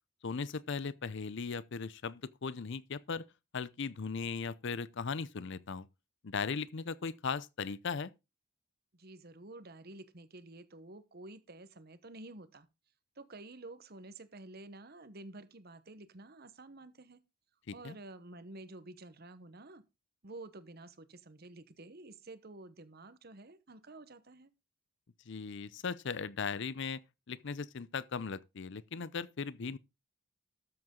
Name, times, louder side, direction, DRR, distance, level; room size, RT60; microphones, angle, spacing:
voice 1, 0.2-3.2 3.5-5.9 6.2-8.1 17.7-18.0 25.3-27.0 27.3-29.8, left 5 dB, 55° left, 0.6 m, -38 dB
voice 2, 8.9-12.7 13.2-17.2 17.7-19.8 20.2-24.5, right 2 dB, 45° right, 1.1 m, -50 dB
13.0 x 7.8 x 3.8 m
head